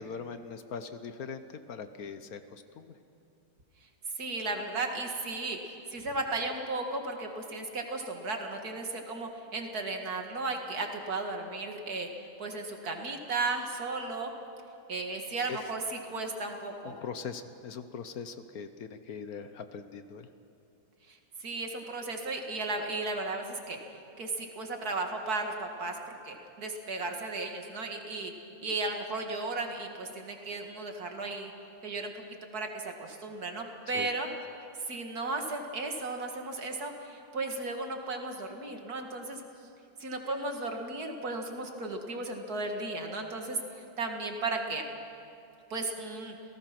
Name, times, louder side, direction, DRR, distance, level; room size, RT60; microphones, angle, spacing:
voice 1, 0.0-2.9 15.5-15.6 16.8-20.3 33.9-34.1, left 6 dB, 65° left, 10 dB, 1.4 m, -41 dB
voice 2, 4.2-14.3 14.9-16.9 21.1-23.8 24.2-26.0 26.2-28.3 28.6-31.5 31.8-32.1 32.5-34.3 34.8-39.4 40.0-44.8 45.7-46.3, right 3 dB, 65° right, 3 dB, 2.4 m, -35 dB
29.0 x 18.0 x 6.0 m, 2.7 s
omnidirectional pair, 1.8 m